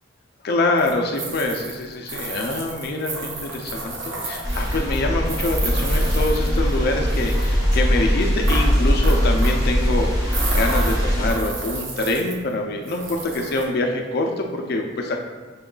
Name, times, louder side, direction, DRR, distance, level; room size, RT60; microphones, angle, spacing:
voice 1, 0.4-15.2, left 2 dB, 55° left, 2 dB, 0.4 m, -25 dB
sound 1, 0.8-6.8 7.1-7.5 8.4-9.7 10.3-12.5 12.8-13.6, right 2 dB, 85° right, 0.8 m, -32 dB
sound 2, 4.4-11.3, equal, 20° right, 1.1 m, -21 dB
6.1 x 2.3 x 3.7 m, 1.3 s
head